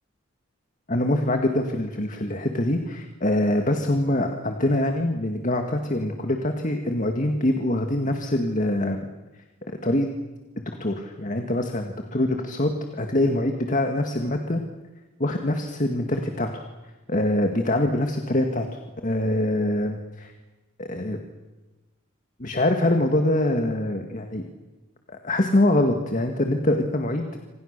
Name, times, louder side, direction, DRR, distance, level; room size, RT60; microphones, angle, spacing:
voice 1, 0.9-9.1 9.7-10.1 10.7-14.6 15.2-16.6 17.1-18.7 19.0-20.3 20.8-21.2 22.4-24.4 25.1-27.3, left 1 dB, 40° left, 5 dB, 1.9 m, -24 dB
27.5 x 26.5 x 6.7 m, 1.2 s
head